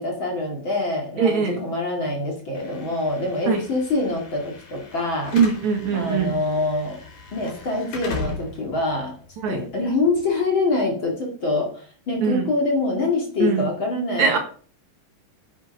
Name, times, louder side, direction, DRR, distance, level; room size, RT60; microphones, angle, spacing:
voice 1, 0.0-5.3 5.9-7.0 7.3-9.1 9.5-14.4, left 2 dB, 40° left, 0 dB, 2.5 m, -25 dB
voice 2, 1.2-1.6 3.5-3.6 5.3-6.3 9.4-9.6 12.2-12.5 13.4-13.7 14.2-14.4, right 6 dB, 65° right, 4 dB, 2.6 m, -21 dB
Slam / Alarm, 2.5-10.6, left 4 dB, 70° left, 4.7 m, -38 dB
10.0 x 7.4 x 5.3 m, 0.43 s
omnidirectional pair, 4.0 m